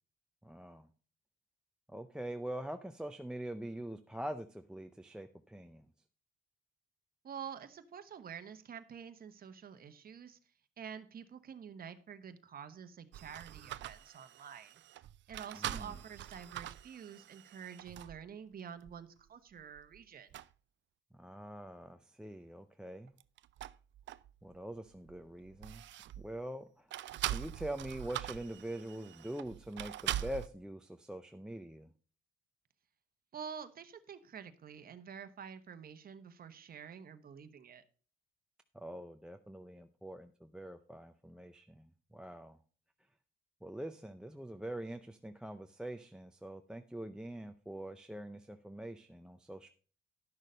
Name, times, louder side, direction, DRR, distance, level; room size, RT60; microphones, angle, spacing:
voice 1, 0.4-0.9 1.9-5.9 15.5-16.0 21.1-23.1 24.4-25.8 26.2-26.9 27.3-31.9 38.7-42.6 43.6-49.7, right 1 dB, 5° right, 10 dB, 0.6 m, -44 dB
voice 2, 7.2-10.4 10.8-14.7 15.3-20.3 33.3-37.8, right 7 dB, 50° right, 9 dB, 1.1 m, -48 dB
sound 1, 13.1-18.3 18.8-19.0 19.6-20.0 20.3-20.5 23.1-24.6 24.9-26.4 26.9-30.5, right 13 dB, 70° right, 0.5 m, -43 dB
11.0 x 6.5 x 5.1 m, 0.39 s
cardioid pair, 90°, 20 cm